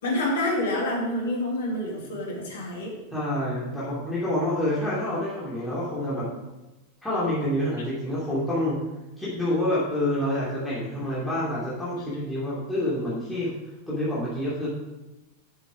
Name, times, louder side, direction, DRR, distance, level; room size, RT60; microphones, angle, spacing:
voice 1, 0.0-3.0, left 1 dB, 60° left, -1 dB, 2.3 m, -27 dB
voice 2, 3.1-6.3 7.0-8.8 9.2-13.5 13.9-14.7, left 1 dB, ahead, -9 dB, 2.6 m, -27 dB
7.5 x 6.0 x 4.9 m, 1.0 s
figure-of-eight pair, 90°, 0 cm